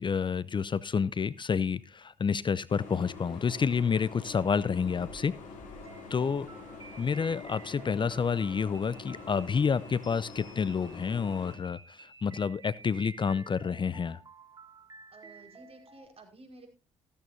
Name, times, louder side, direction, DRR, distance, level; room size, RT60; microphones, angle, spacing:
voice 1, 0.0-5.3 6.1-6.5 7.0-14.2, left 6 dB, 35° left, 18 dB, 0.6 m, -29 dB
sound 1, 2.7-11.6, left 4 dB, 65° left, 3.3 m, -46 dB
sound 2, 5.8-16.1, right 3 dB, 30° right, 2.4 m, -52 dB
voice 2, 5.8-6.2 15.1-16.7, right 2 dB, 45° right, 5 dB, 5.1 m, -53 dB
15.0 x 14.0 x 2.7 m, 0.28 s
hypercardioid pair, 45°, 14 cm